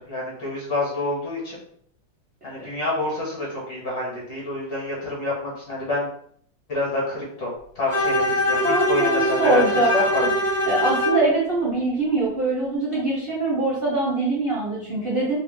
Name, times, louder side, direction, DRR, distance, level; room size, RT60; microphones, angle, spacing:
voice 1, 0.1-1.6 2.4-6.1 6.7-10.2, left 2 dB, 55° left, -5 dB, 1.8 m, -27 dB
Bowed string instrument, 7.9-11.3, left 1 dB, 15° left, 0.5 m, -23 dB
voice 2, 8.6-9.9 10.2-10.3 10.7-15.4, right 2 dB, 45° right, -7 dB, 0.7 m, -23 dB
3.4 x 2.3 x 3.6 m, 0.63 s
omnidirectional pair, 2.0 m